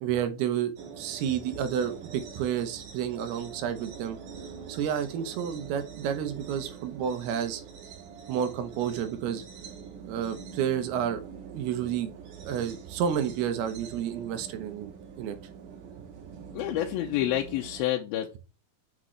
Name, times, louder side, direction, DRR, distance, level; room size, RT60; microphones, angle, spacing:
voice 1, 0.0-4.2 4.7-7.6 8.3-9.4 10.1-11.2 11.5-12.1 12.4-14.9 15.2-15.4, right 9 dB, 80° right, 9 dB, 2.9 m, -30 dB
sound 1, 0.8-17.9, right 6 dB, 65° right, 2.8 m, -45 dB
voice 2, 16.5-18.4, left 13 dB, 80° left, 2 dB, 2.4 m, -28 dB
7.1 x 6.2 x 3.2 m, 0.31 s
omnidirectional pair, 4.6 m